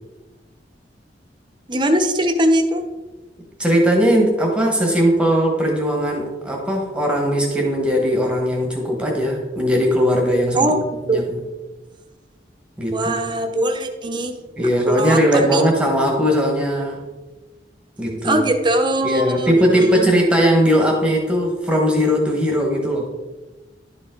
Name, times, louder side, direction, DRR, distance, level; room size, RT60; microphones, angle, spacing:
voice 1, 1.7-2.9 10.5-10.8 11.1-11.2 12.9-14.4 14.9-15.6 18.2-20.0, right 1 dB, 25° right, 6 dB, 0.8 m, -20 dB
voice 2, 3.6-10.8 11.0-11.2 12.8-13.2 14.6-17.0 18.0-18.4 19.0-23.1, equal, 5° right, 0 dB, 1.2 m, -19 dB
11.0 x 5.0 x 3.8 m, 1.1 s
head